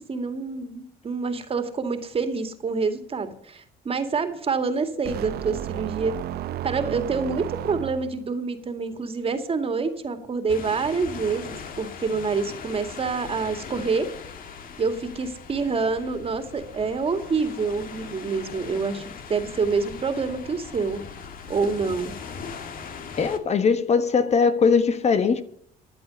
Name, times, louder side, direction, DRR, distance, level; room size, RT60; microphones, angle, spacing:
voice 1, 0.1-6.2 6.6-14.1 14.8-19.0 19.3-21.0 21.5-22.1, right 4 dB, 35° right, 2.2 m, -27 dB
sound 1, 5.0-8.3, right 12 dB, 70° right, 0.6 m, -33 dB
sound 2, 10.5-23.4, left 6 dB, 55° left, 2.2 m, -40 dB
voice 2, 23.2-25.4, left 5 dB, 40° left, 1.3 m, -20 dB
15.5 x 11.0 x 5.4 m
cardioid pair, 110°, 17 cm